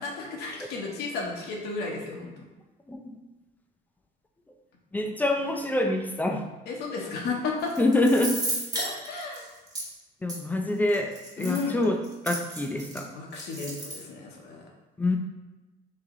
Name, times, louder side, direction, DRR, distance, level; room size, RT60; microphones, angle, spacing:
voice 1, 0.0-2.5 6.7-7.7 8.7-9.5 11.4-11.8 13.1-14.7, left 4 dB, 75° left, -1 dB, 0.8 m, -33 dB
voice 2, 4.9-6.4 7.8-8.4 10.2-12.0 12.2-13.1 15.0-15.2, left 1 dB, 10° left, 3 dB, 0.4 m, -25 dB
sound 1, 7.6-9.8 10.3-10.4 10.9-13.0 13.3-14.0, right 1 dB, 20° right, 1.0 m, -33 dB
3.3 x 2.8 x 3.6 m, 1.1 s
cardioid pair, 110°, 17 cm